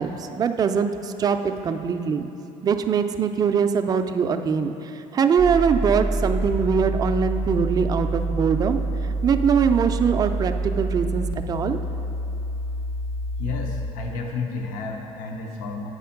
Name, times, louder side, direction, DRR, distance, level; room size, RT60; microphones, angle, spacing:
voice 1, 0.0-2.3 2.6-11.8, right 6 dB, 25° right, 7 dB, 0.3 m, -22 dB
sound 1, 5.4-13.9, right 2 dB, 30° left, 0.7 m, -27 dB
voice 2, 13.4-15.9, left 4 dB, 70° left, 2 dB, 0.8 m, -31 dB
8.5 x 4.3 x 5.8 m, 3.0 s
cardioid pair, 135°, 15 cm